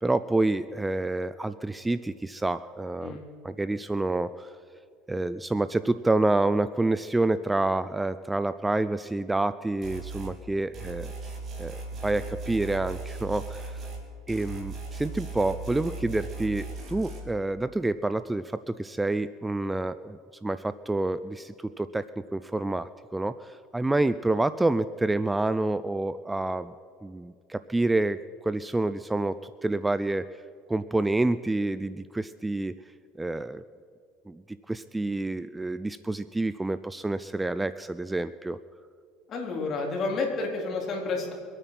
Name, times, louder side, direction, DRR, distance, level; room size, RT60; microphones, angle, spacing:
voice 1, 0.0-3.2 3.4-4.6 5.1-11.1 11.6-13.9 14.3-22.1 22.3-26.7 27.0-30.3 30.7-32.7 33.2-33.6 34.3-38.6, right 2 dB, 10° right, 14 dB, 0.3 m, -28 dB
sound 1, 9.8-10.3 10.7-14.0 14.3-17.2, right 3 dB, 40° right, 3.3 m, -38 dB
voice 2, 39.3-41.3, left 3 dB, 40° left, 0 dB, 3.6 m, -30 dB
23.5 x 9.1 x 5.9 m, 2.3 s
supercardioid pair, 120°, 0 cm